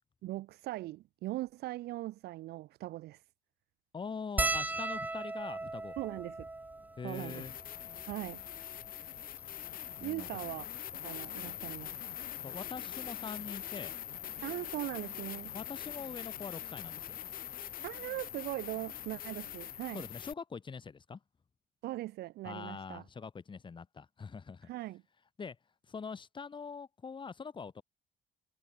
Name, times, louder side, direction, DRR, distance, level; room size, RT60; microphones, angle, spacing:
voice 1, 0.2-3.2 6.0-6.5 7.0-7.5 8.1-8.4 10.0-10.7 11.0-12.2 14.4-15.5 17.8-20.1 21.8-23.0 24.6-25.0, right 17 dB, 75° right, 0.7 m, -40 dB
voice 2, 3.9-5.9 7.0-7.5 10.0-10.5 12.4-13.9 15.5-17.2 19.9-21.2 22.4-24.7 25.4-25.6 25.9-27.8, left 5 dB, 30° left, 3.3 m, -43 dB
sound 1, 4.4-9.0 9.7-9.8 10.0-10.2 11.5-11.7 13.1-13.2 13.5-13.7, right 2 dB, 10° right, 0.6 m, -38 dB
sound 2, 6.3-6.4 7.1-20.3, left 11 dB, 55° left, 3.4 m, -43 dB
cardioid pair, 110°, 17 cm